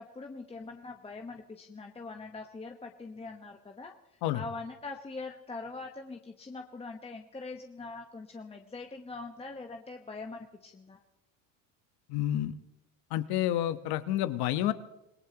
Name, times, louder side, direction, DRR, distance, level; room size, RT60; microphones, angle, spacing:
voice 1, 0.0-3.9 4.3-11.0, left 3 dB, 15° left, 3 dB, 1.2 m, -43 dB
voice 2, 12.1-12.5 13.1-14.7, left 12 dB, 70° left, 12 dB, 1.2 m, -29 dB
26.5 x 18.0 x 3.0 m, 0.92 s
supercardioid pair, 110°, 40 cm